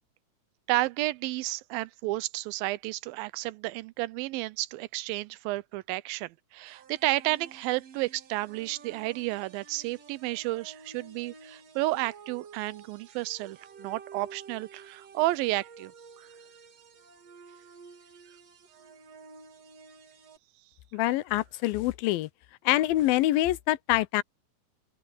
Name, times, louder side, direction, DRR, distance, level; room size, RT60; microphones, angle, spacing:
voice 1, 0.7-15.9 16.2-16.3, right 19 dB, 85° right, 2.4 m, -31 dB
sound 1, 6.7-20.4, right 5 dB, 50° right, 2.8 m, -51 dB
voice 2, 20.9-22.3 22.7-24.2, left 16 dB, 85° left, 2.5 m, -25 dB
open air
omnidirectional pair, 4.1 m